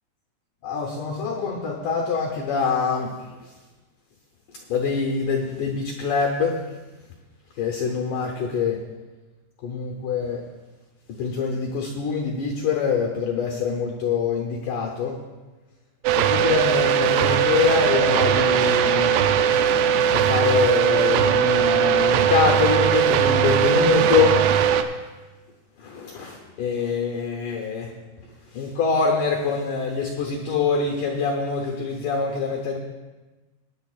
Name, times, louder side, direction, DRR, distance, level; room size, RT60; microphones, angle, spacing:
voice 1, 0.6-3.1 4.7-6.6 7.6-8.8 9.6-10.5 11.2-15.2 16.2-19.1 20.1-24.4 25.8-27.9 28.5-32.8, left 5 dB, 85° left, 1 dB, 1.8 m, -24 dB
sound 1, 16.1-24.8, right 8 dB, 80° right, 2.4 m, -19 dB
20.0 x 9.6 x 2.4 m, 1.2 s
omnidirectional pair, 5.1 m